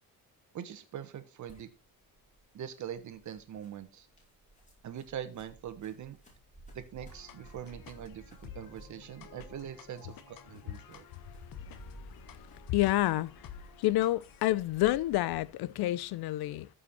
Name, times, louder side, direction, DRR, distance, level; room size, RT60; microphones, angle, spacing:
voice 1, 0.5-1.7 2.5-4.1 4.8-6.2 6.7-11.1, right 9 dB, 50° right, 1.3 m, -43 dB
sound 1, 1.4-15.5, right 1 dB, 20° left, 4.5 m, -55 dB
sound 2, 7.0-14.4, left 9 dB, 65° left, 1.2 m, -52 dB
voice 2, 12.7-13.3 13.8-16.7, left 16 dB, 85° left, 0.6 m, -28 dB
14.0 x 5.6 x 4.3 m
cardioid pair, 165°, 36 cm